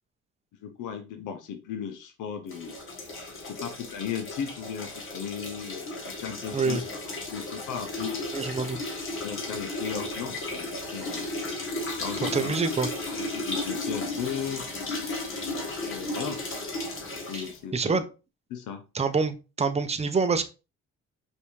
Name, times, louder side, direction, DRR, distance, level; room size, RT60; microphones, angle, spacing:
voice 1, 0.6-2.7 3.5-6.8 7.1-8.2 9.2-11.3 12.0-12.6 13.1-14.6 15.5-16.4 17.3-18.0 18.5-18.8, left 8 dB, 85° left, 6 dB, 0.7 m, -36 dB
sound 1, 2.5-17.6, left 2 dB, 45° left, 1.5 m, -34 dB
voice 2, 8.3-8.8 12.2-12.9 17.3-17.4 17.7-18.0 18.9-20.4, right 4 dB, 20° right, 9 dB, 0.6 m, -26 dB
5.3 x 2.7 x 3.1 m, 0.30 s
cardioid pair, 90°, 30 cm